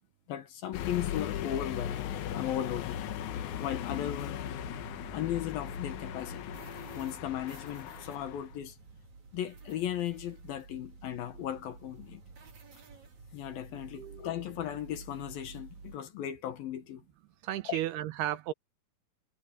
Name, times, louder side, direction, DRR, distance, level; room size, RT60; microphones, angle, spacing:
voice 1, 0.3-3.1 3.6-4.4 5.1-6.6 6.9-8.8 9.3-12.2 13.3-17.1 17.6-17.8, left 11 dB, 70° left, 2.7 m, -36 dB
sound 1, 0.7-8.5, left 11 dB, 85° left, 1.7 m, -38 dB
sound 2, 1.5-16.0, right 4 dB, 45° right, 4.6 m, -50 dB
voice 2, 17.4-18.5, right 13 dB, 75° right, 2.7 m, -33 dB
omnidirectional pair, 4.9 m